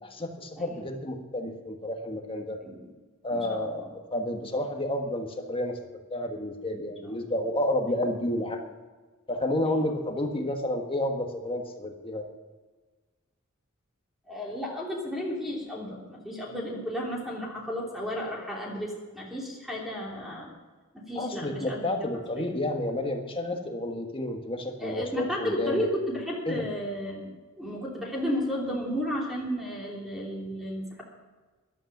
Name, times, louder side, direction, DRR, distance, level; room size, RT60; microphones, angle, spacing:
voice 1, 0.0-2.6 3.2-5.8 6.1-8.7 9.3-12.3 21.1-25.9 26.5-26.6, left 1 dB, 25° left, 3 dB, 1.6 m, -30 dB
voice 2, 0.6-0.9 2.6-2.9 3.3-3.7 14.3-20.5 20.9-21.9 22.4-22.5 24.8-27.3 27.6-31.0, equal, ahead, -3 dB, 3.1 m, -33 dB
14.0 x 11.5 x 6.0 m, 1.3 s
head